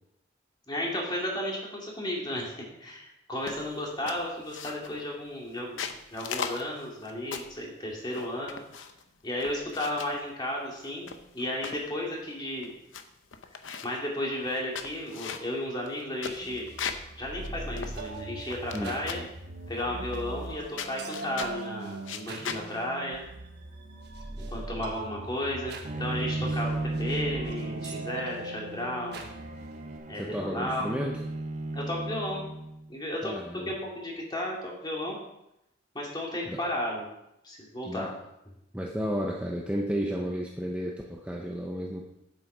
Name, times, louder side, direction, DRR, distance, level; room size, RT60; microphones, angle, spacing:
voice 1, 0.7-8.6 9.2-12.7 13.8-16.7 17.2-19.2 19.7-23.3 24.5-29.3 30.1-31.0 31.7-32.5 32.9-35.2 35.9-37.1 37.4-38.1, left 1 dB, 25° left, -2 dB, 2.4 m, -34 dB
sound 1, 3.5-3.7 4.1-5.0 5.6-7.6 8.1-9.0 9.4-10.2 10.8-11.8 12.3-12.4 12.6-13.0 13.3-14.0 14.5-17.1 17.4-17.5 17.8-18.8 19.1-19.4 20.1-20.5 20.8-21.6 22.0-22.6, left 6 dB, 90° left, 0.8 m, -38 dB
sound 2, 16.3-30.0, right 2 dB, 60° right, 1.3 m, -41 dB
Bowed string instrument, 25.8-32.9, right 2 dB, 40° right, 0.8 m, -35 dB
voice 2, 30.1-31.2 33.2-33.8 36.5-36.6 37.8-38.2 38.7-42.0, equal, 5° right, -1 dB, 0.7 m, -33 dB
8.1 x 8.0 x 5.0 m, 0.84 s
head